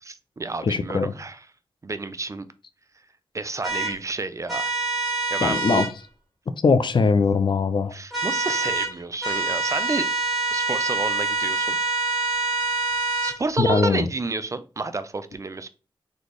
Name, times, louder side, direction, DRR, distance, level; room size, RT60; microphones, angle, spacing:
voice 1, 0.0-1.4 1.8-2.5 3.3-4.7 5.3-5.8 7.9-10.1 10.5-11.8 13.2-15.7, right 3 dB, 35° right, 0.4 m, -30 dB
voice 2, 0.6-1.1 5.4-5.9 6.6-7.9 13.6-14.1, left 4 dB, 55° left, 0.4 m, -21 dB
sound 1, 3.6-3.9 4.5-5.9 8.1-8.9 9.2-13.4, right 3 dB, ahead, 1.8 m, -25 dB
4.1 x 3.4 x 3.0 m
wide cardioid pair, 100°, 9 cm